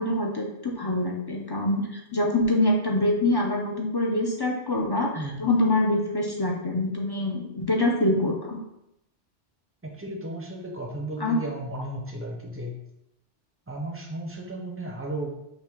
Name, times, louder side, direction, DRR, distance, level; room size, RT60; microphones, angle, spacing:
voice 1, 0.0-5.1 5.4-8.6 11.2-11.4, left 1 dB, 40° left, 0 dB, 0.3 m, -25 dB
voice 2, 9.8-12.8 13.7-15.4, right 1 dB, 15° right, 0 dB, 0.5 m, -34 dB
5.6 x 2.2 x 3.5 m, 0.84 s
omnidirectional pair, 1.1 m